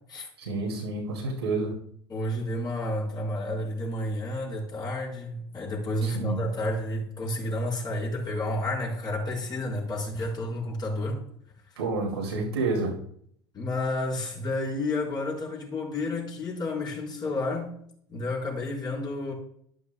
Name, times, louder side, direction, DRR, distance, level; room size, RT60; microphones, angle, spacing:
voice 1, 0.4-1.7 6.0-6.4 11.8-12.9, right 3 dB, 80° right, 2.4 m, -29 dB
voice 2, 2.1-11.2 13.5-17.8 18.1-19.3, left 1 dB, 30° left, 4.4 m, -30 dB
11.5 x 11.5 x 2.3 m
figure-of-eight pair, 75°, 13 cm